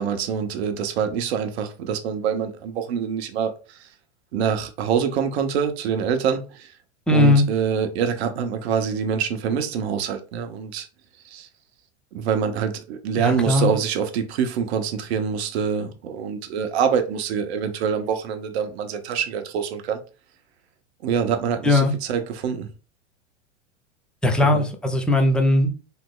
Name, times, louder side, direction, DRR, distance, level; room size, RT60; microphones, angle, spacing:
voice 1, 0.0-3.9 4.3-6.7 7.1-10.9 11.3-11.5 12.1-20.0 21.0-22.7 24.4-24.6, right 7 dB, 60° right, 0.8 m, -25 dB
voice 2, 7.1-7.4 13.2-13.7 21.6-21.9 24.2-25.7, left 2 dB, 5° left, 0.4 m, -18 dB
3.1 x 2.0 x 3.7 m
hypercardioid pair, 105°, 36 cm